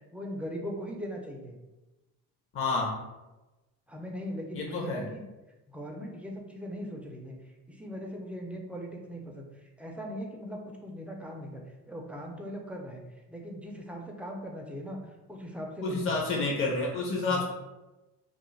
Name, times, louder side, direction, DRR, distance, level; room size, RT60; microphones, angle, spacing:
voice 1, 0.1-1.6 3.9-5.2 5.7-7.3 7.7-16.2 17.2-17.4, equal, 5° right, 0 dB, 0.3 m, -40 dB
voice 2, 2.5-2.9 4.5-5.0 15.8-17.4, left 3 dB, 35° left, -3 dB, 0.6 m, -29 dB
2.4 x 2.0 x 3.1 m, 1.1 s
supercardioid pair, 80°, 38 cm